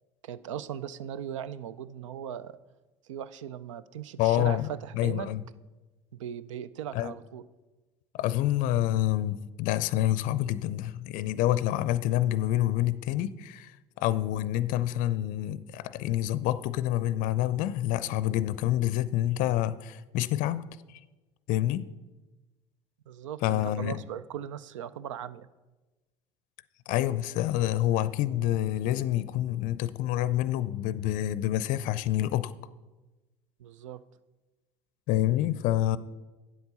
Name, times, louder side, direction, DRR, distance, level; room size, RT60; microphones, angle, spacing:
voice 1, 0.2-2.6 3.1-5.3 6.1-7.4 23.1-25.5 33.6-34.0, right 9 dB, 85° right, 0.4 m, -38 dB
voice 2, 4.2-4.7 4.9-5.4 6.9-7.1 8.1-21.0 21.5-21.9 23.4-24.0 26.9-32.5 35.1-36.0, left 13 dB, 60° left, 0.5 m, -27 dB
9.5 x 7.9 x 5.5 m
hypercardioid pair, 70°, 16 cm